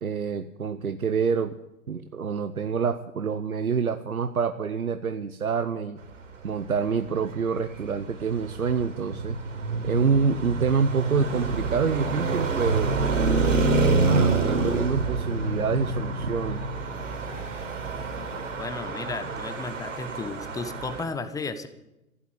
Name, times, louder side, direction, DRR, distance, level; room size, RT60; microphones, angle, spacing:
voice 1, 0.0-1.6 1.9-6.0 6.4-9.4 9.8-13.0 13.8-16.6, right 5 dB, 90° right, 10 dB, 0.9 m, -27 dB
Traffic noise roadway noise, 7.3-21.0, right 3 dB, 60° right, 4.4 m, -27 dB
voice 2, 18.6-21.7, left 4 dB, 10° left, 11 dB, 1.1 m, -34 dB
15.0 x 11.5 x 8.3 m, 0.95 s
figure-of-eight pair, 115°, 42 cm